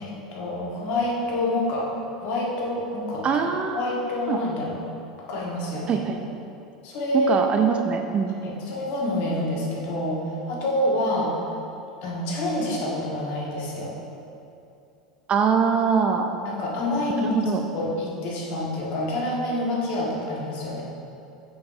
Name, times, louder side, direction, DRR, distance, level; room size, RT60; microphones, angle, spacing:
voice 1, 0.0-1.9 2.2-3.4 3.7-4.8 5.3-6.1 6.8-7.3 8.4-11.3 12.0-13.9 16.4-20.8, left 1 dB, 50° left, -4 dB, 1.4 m, -27 dB
voice 2, 3.2-3.9 4.3-4.4 5.9-6.2 7.3-8.4 15.3-16.3 17.3-17.6, right 6 dB, 30° right, 5 dB, 0.4 m, -23 dB
7.1 x 6.0 x 2.5 m, 2.6 s
figure-of-eight pair, 80°, 4 cm